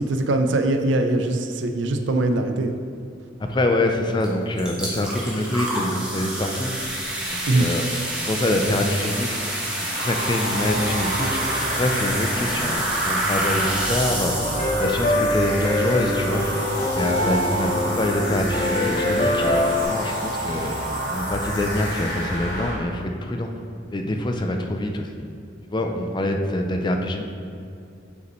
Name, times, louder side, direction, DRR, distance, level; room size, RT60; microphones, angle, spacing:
voice 1, 0.0-2.7 7.5-7.7, right 2 dB, 70° right, 6 dB, 0.5 m, -22 dB
voice 2, 3.4-6.7 7.3-9.4 9.8-14.5 14.8-16.6 16.9-20.8 21.1-23.5 23.9-25.1 25.7-27.2, left 1 dB, 25° left, 4 dB, 0.4 m, -25 dB
sound 1, 4.2-4.3 4.6-22.3, right 1 dB, 5° right, 1.2 m, -29 dB
sound 2, 9.9-22.7, equal, 60° left, 1.6 m, -29 dB
sound 3, 14.4-19.8, left 1 dB, 40° left, 1.0 m, -24 dB
8.1 x 5.3 x 3.1 m, 2.6 s
head